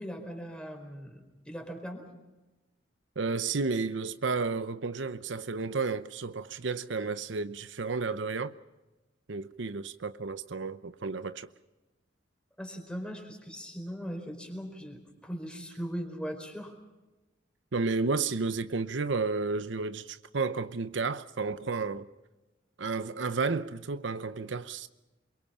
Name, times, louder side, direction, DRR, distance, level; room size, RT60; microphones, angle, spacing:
voice 1, 0.0-2.1 12.6-16.7, equal, 5° left, 4.5 m, -39 dB
voice 2, 3.2-8.5 9.3-11.5 17.7-22.1 22.8-24.9, right 4 dB, 70° right, 0.8 m, -32 dB
28.0 x 23.5 x 5.7 m
head